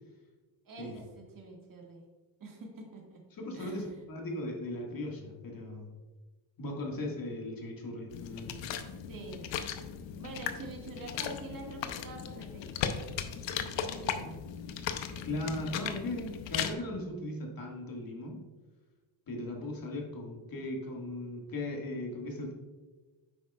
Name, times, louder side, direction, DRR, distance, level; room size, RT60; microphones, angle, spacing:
voice 1, 0.7-2.0 2.4-3.2 3.5-4.0 9.1-9.5 10.2-12.9 13.6-14.5, right 3 dB, 45° right, 0 dB, 1.8 m, -46 dB
voice 2, 3.4-5.9 6.6-8.6 15.2-18.4 19.3-22.5, left 1 dB, 45° left, 0 dB, 1.8 m, -38 dB
sound 1, 8.1-16.7, left 8 dB, 75° left, 0.8 m, -37 dB
9.0 x 6.1 x 2.3 m, 1.2 s
cardioid pair, 100°, 45 cm